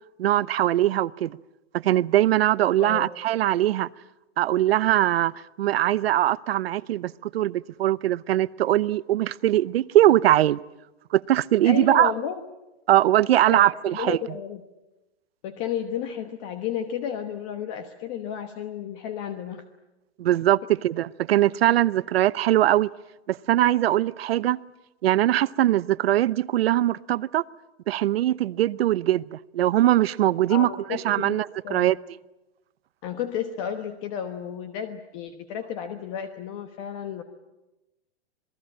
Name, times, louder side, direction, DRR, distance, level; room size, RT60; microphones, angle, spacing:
voice 1, 0.2-1.4 1.7-3.9 4.4-5.3 5.6-10.6 11.1-12.1 12.9-14.2 20.2-22.9 23.3-24.6 25.0-27.4 27.9-32.0, right 13 dB, 60° right, 0.8 m, -21 dB
voice 2, 2.8-3.1 11.6-12.4 13.5-14.6 15.4-19.6 30.5-32.0 33.0-37.2, left 9 dB, 30° left, 1.2 m, -32 dB
27.5 x 19.5 x 8.7 m
hypercardioid pair, 165°, 34 cm